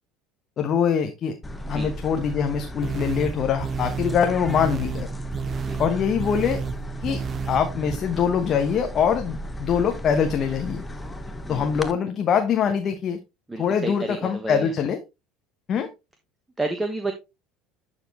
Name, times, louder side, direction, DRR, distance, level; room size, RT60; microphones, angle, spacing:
voice 1, 0.6-1.3 1.7-5.1 5.8-6.6 7.0-7.2 7.5-10.8 11.5-13.2 13.6-15.0 15.7-15.9, left 7 dB, 45° left, 5 dB, 1.1 m, -23 dB
sound 1, 1.4-11.9, equal, 15° left, 1.1 m, -36 dB
sound 2, 2.8-8.0, right 6 dB, 40° right, 0.4 m, -31 dB
voice 2, 13.5-14.7 16.6-17.1, right 2 dB, 15° right, 6 dB, 1.3 m, -30 dB
11.5 x 4.3 x 3.1 m, 0.25 s
hypercardioid pair, 70°, 0 cm